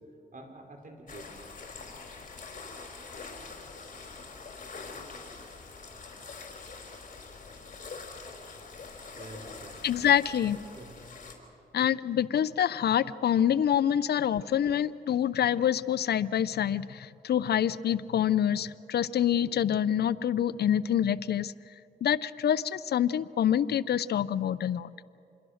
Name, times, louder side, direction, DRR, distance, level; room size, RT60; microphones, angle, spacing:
voice 1, 0.3-1.3 3.2-3.3 5.9-6.0 9.2-9.9 10.7-11.0, right 2 dB, 55° right, 3 dB, 4.1 m, -47 dB
sound 1, 1.1-11.3, left 4 dB, 55° left, 3.9 m, -44 dB
voice 2, 9.8-10.6 11.7-21.5 22.0-24.9, left 9 dB, 75° left, 18 dB, 0.5 m, -26 dB
27.0 x 21.5 x 6.4 m, 2.6 s
cardioid pair, 70°, 17 cm